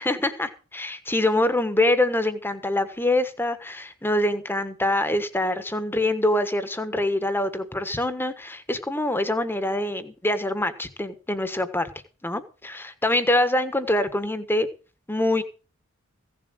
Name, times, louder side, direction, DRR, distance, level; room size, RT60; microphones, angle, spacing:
voice 1, 0.0-11.9 12.2-14.7 15.1-15.4, left 1 dB, 10° left, 11 dB, 1.3 m, -25 dB
16.0 x 7.4 x 6.3 m, 0.36 s
head